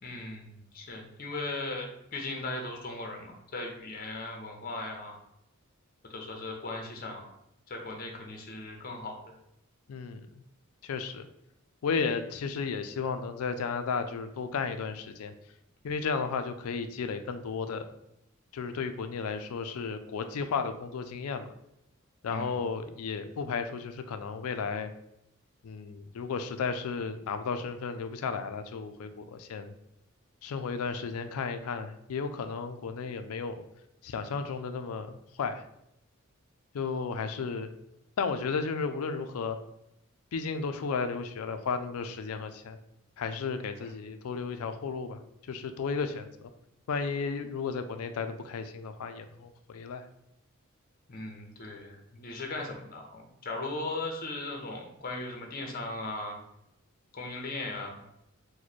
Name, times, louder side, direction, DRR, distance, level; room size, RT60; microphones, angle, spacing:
voice 1, 0.0-5.1 6.1-7.3 7.7-9.1 22.3-22.6 51.1-56.4 57.1-58.0, left 2 dB, 40° left, 2 dB, 0.6 m, -38 dB
voice 2, 9.9-10.4 10.8-11.3 11.8-15.3 15.8-17.9 18.5-21.5 22.2-24.9 25.6-29.7 30.4-33.5 34.0-35.7 36.7-37.7 38.2-39.6 40.3-42.8 43.2-45.2 45.5-46.5 46.9-50.1, left 5 dB, 80° left, 8 dB, 0.4 m, -33 dB
3.1 x 2.1 x 4.0 m, 0.81 s
head